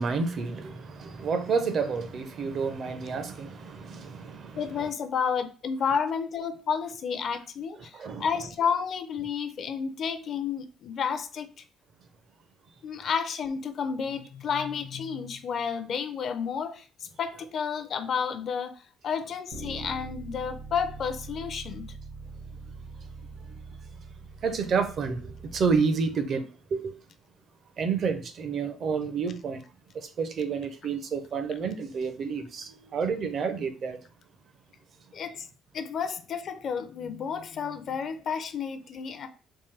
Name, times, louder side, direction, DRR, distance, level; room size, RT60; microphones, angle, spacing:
voice 1, 0.0-4.9 7.9-8.3 14.5-14.6 23.5-23.6 24.4-26.9 27.8-29.6 29.9-34.0, right 5 dB, 45° right, 0.5 m, -30 dB
voice 2, 4.6-11.5 12.8-16.8 17.2-21.9 35.1-35.5 35.7-39.3, left 6 dB, 45° left, 0.4 m, -31 dB
Bass guitar, 19.5-25.8, right 3 dB, 85° right, 1.4 m, -43 dB
3.6 x 2.6 x 3.2 m
cardioid pair, 145°, 0 cm